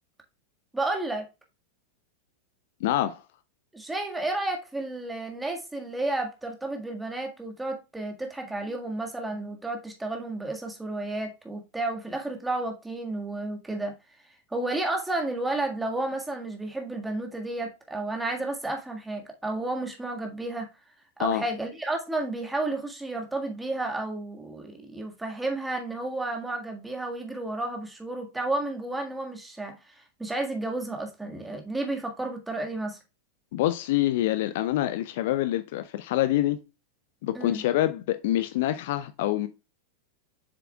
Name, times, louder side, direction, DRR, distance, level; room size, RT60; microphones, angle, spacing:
voice 1, 0.7-1.2 3.7-14.2 14.5-20.7 21.2-33.0 37.3-37.6, right 2 dB, 5° right, 1.7 m, -32 dB
voice 2, 2.8-3.2 21.2-21.4 33.5-36.6 37.2-39.5, left 14 dB, 50° left, 0.5 m, -26 dB
7.4 x 6.7 x 2.3 m
figure-of-eight pair, 90°, 0 cm